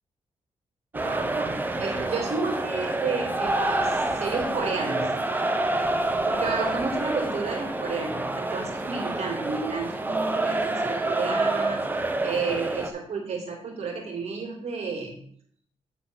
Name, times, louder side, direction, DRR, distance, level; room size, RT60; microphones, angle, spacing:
sound 1, 0.9-12.9, right 2 dB, 15° right, 0.8 m, -27 dB
voice 1, 0.9-5.1 6.3-11.8 12.2-15.2, right 4 dB, 65° right, 1 dB, 2.6 m, -31 dB
8.7 x 4.0 x 6.1 m, 0.64 s
cardioid pair, 105°, 11 cm